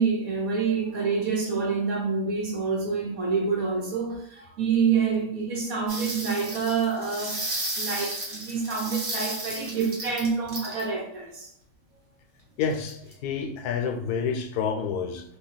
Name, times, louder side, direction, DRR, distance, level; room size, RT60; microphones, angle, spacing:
voice 1, 0.0-7.4 7.8-11.5, right 5 dB, 70° right, -1 dB, 1.3 m, -27 dB
sound 1, 5.9-10.8 12.6-13.1, right 1 dB, 50° right, 1.2 m, -33 dB
voice 2, 12.6-13.0 13.2-15.2, left 6 dB, 85° left, 4 dB, 1.1 m, -28 dB
3.0 x 2.2 x 3.8 m, 0.70 s
omnidirectional pair, 1.6 m